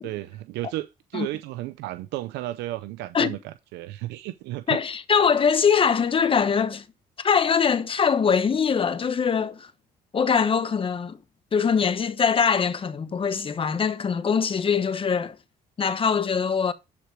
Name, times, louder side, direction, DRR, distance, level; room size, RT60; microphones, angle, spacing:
voice 1, 0.0-4.8, right 16 dB, 85° right, 0.6 m, -33 dB
voice 2, 4.7-6.8 7.2-9.7 10.1-11.2 11.5-15.4 15.8-16.7, left 6 dB, 30° left, 1.1 m, -22 dB
11.5 x 5.1 x 4.4 m
cardioid pair, 110°, 17 cm